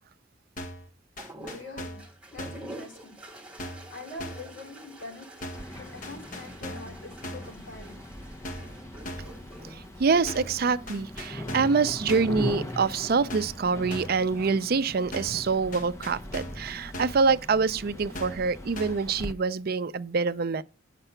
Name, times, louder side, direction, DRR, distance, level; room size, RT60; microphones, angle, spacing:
sound 1, 0.6-0.9 1.2-2.1 2.4-2.7 3.6-3.9 4.2-4.5 5.4-5.7 6.0-7.0 7.2-7.6 8.4-8.8 9.1-9.4 10.3-10.6 10.9-11.8 12.1-12.4 13.3-13.6 13.9-14.2 15.1-15.4 15.7-16.7 16.9-17.3 18.1-18.5 18.8-19.1, left 1 dB, 45° left, 1.3 m, -39 dB
sound 2, 1.2-11.9 13.0-13.6, right 1 dB, 5° right, 2.6 m, -47 dB
voice 1, 1.5-2.0 2.3-3.2 3.9-5.3 5.7-8.0, left 2 dB, 75° left, 3.6 m, -44 dB
sound 3, 5.5-19.3, left 1 dB, 15° left, 0.8 m, -40 dB
voice 2, 9.7-20.6, right 4 dB, 50° right, 0.5 m, -26 dB
9.0 x 6.7 x 5.7 m
head